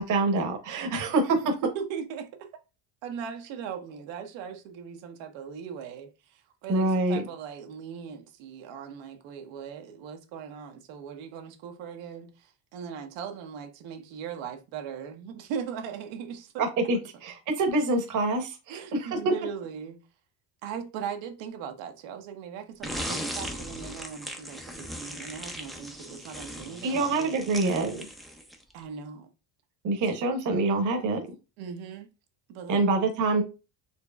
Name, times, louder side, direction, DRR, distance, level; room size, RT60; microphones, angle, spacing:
voice 1, 0.0-1.4 6.7-7.2 16.6-19.1 26.8-28.0 29.8-31.2 32.7-33.4, right 2 dB, 45° right, 0.9 m, -26 dB
voice 2, 1.6-2.5 3.0-16.6 18.7-20.0 20.6-27.5 28.7-29.3 31.6-32.1 32.5-32.9, right 7 dB, 80° right, 0.9 m, -39 dB
sound 1, 22.8-28.7, equal, ahead, 0.4 m, -38 dB
4.4 x 3.0 x 2.3 m
cardioid pair, 130°, 44 cm